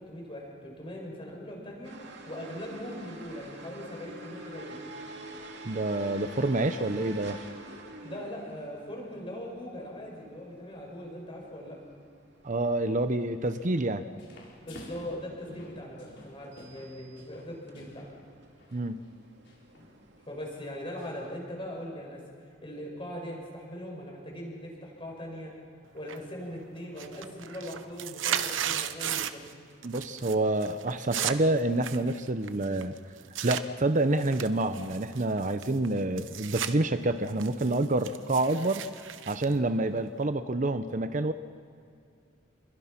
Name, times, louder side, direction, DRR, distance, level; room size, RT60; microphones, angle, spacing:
voice 1, 0.0-1.9 2.3-4.8 8.0-11.8 14.6-18.1 20.3-22.2 22.6-25.5 25.9-29.4, equal, 30° left, -1 dB, 7.1 m, -40 dB
sound 1, 1.8-21.3, right 2 dB, 65° right, 2.8 m, -49 dB
voice 2, 5.6-7.4 12.4-14.0 18.7-19.0 29.8-33.0 33.4-38.8 39.3-41.3, right 2 dB, 40° right, 10 dB, 0.8 m, -28 dB
sound 2, 13.4-13.9 14.2-18.2 18.5-18.8 19.5-19.9 20.4-20.5 21.0-21.3, left 1 dB, 65° left, 5.8 m, -50 dB
sound 3, 26.1-26.5 26.8-29.5 29.8-30.3 30.6-33.6 34.2-36.7 37.1-40.3, right 9 dB, 90° right, 0.9 m, -35 dB
29.5 x 22.5 x 6.0 m, 2.4 s
head